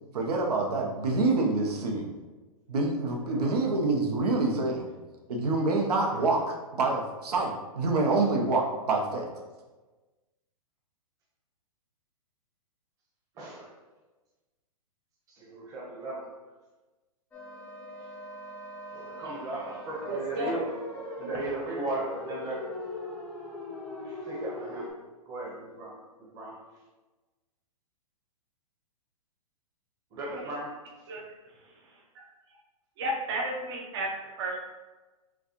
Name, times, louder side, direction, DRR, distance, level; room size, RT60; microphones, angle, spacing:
voice 1, 0.1-2.1 2.7-4.9 5.3-9.3, right 3 dB, 90° right, 1 dB, 0.9 m, -26 dB
voice 2, 13.4-13.7 15.4-16.3 18.9-20.7 21.2-22.6 24.1-24.9 25.3-26.0 26.3-26.6 30.1-30.7, right 2 dB, 20° right, -4 dB, 0.9 m, -36 dB
sound 1, 17.3-24.9, left 2 dB, 5° left, 0.5 m, -40 dB
voice 3, 20.1-20.5 30.3-30.4 31.1-31.2 32.1-32.3 33.0-34.1 34.4-34.6, right 1 dB, 40° right, -2 dB, 0.7 m, -32 dB
6.1 x 2.3 x 3.0 m, 1.2 s
hypercardioid pair, 160°, 19 cm